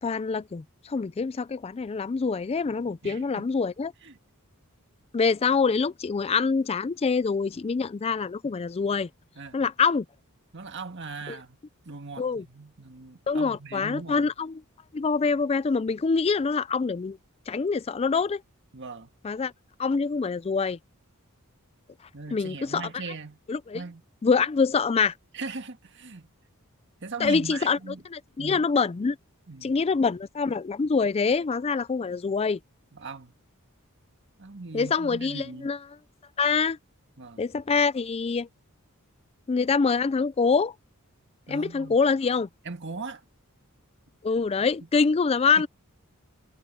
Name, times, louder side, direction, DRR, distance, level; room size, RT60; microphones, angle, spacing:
voice 1, 0.0-3.9 5.1-9.1 9.5-10.1 11.3-11.4 12.2-12.4 13.3-14.6 14.9-17.2 17.5-18.4 19.2-19.5 19.8-20.8 22.3-22.9 23.5-23.8 24.2-25.1 27.2-27.8 28.1-29.2 29.6-32.6 34.7-35.8 36.4-36.8 37.4-38.5 39.5-40.7 41.5-42.5 44.2-45.7, left 5 dB, 25° left, 0.4 m, -25 dB
voice 2, 3.0-3.4 4.0-4.2 9.4-9.6 10.5-11.6 11.9-14.3 18.7-19.1 22.1-23.4 23.7-24.0 25.3-26.3 27.0-28.0 28.4-28.7 29.5-29.8 32.9-33.3 34.4-35.7 37.2-37.4 41.5-42.0 42.7-43.2, right 4 dB, 55° right, 1.8 m, -39 dB
head